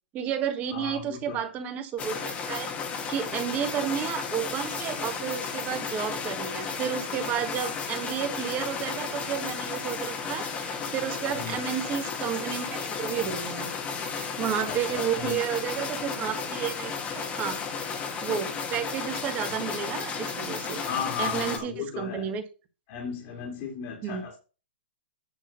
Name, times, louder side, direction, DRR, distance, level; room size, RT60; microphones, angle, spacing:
voice 1, 0.1-2.7 3.1-13.7 14.1-17.7 18.2-20.8 21.2-22.4 24.0-24.2, right 9 dB, 25° right, 1.7 m, -32 dB
voice 2, 0.7-1.5 11.3-11.5 14.6-15.4 20.8-22.3 22.9-24.4, left 7 dB, 40° left, 2.6 m, -35 dB
sound 1, 2.0-21.6, left 5 dB, 25° left, 1.7 m, -33 dB
9.4 x 3.7 x 6.8 m
hypercardioid pair, 140°, 6 cm